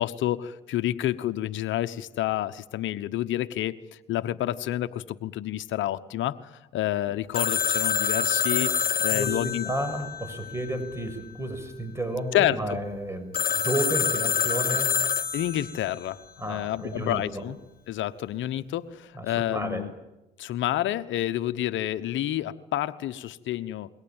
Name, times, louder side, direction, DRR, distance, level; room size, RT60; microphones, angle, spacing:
voice 1, 0.0-9.7 12.3-12.6 15.3-16.2 16.5-17.6 17.9-19.9 20.4-23.9, left 13 dB, 70° left, 11 dB, 1.1 m, -29 dB
Telephone, 7.3-11.0 13.3-15.9, left 7 dB, 45° left, 1.5 m, -27 dB
voice 2, 9.1-13.4 13.6-14.9 16.4-17.4 19.1-19.9, right 1 dB, 15° right, 9 dB, 6.6 m, -32 dB
28.0 x 22.5 x 9.0 m, 0.98 s
supercardioid pair, 70°, 21 cm